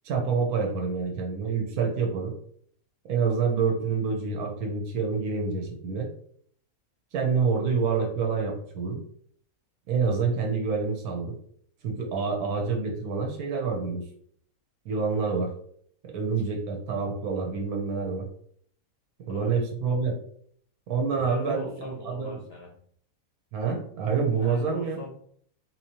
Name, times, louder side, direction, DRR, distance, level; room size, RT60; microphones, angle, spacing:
voice 1, 0.0-2.3 3.1-6.1 7.1-9.0 9.9-11.3 11.8-14.0 14.8-15.5 16.0-18.3 19.3-20.2 20.9-22.4 23.5-25.0, right 5 dB, 85° right, 1 dB, 1.3 m, -27 dB
voice 2, 21.2-22.8 24.4-25.1, left 4 dB, 60° left, 0 dB, 0.7 m, -40 dB
3.8 x 3.0 x 2.8 m, 0.62 s
omnidirectional pair, 1.5 m